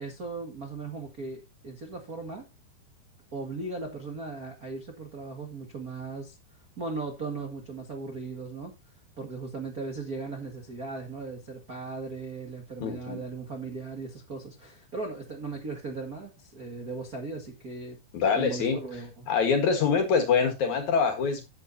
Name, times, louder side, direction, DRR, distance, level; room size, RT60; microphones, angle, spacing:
voice 1, 0.0-2.5 3.3-6.3 6.8-8.7 9.2-18.0 18.3-19.3, right 3 dB, 85° right, 0.8 m, -37 dB
voice 2, 12.8-13.2 18.1-18.8 19.3-21.4, left 5 dB, 55° left, 2.4 m, -24 dB
12.0 x 9.3 x 2.8 m
omnidirectional pair, 5.0 m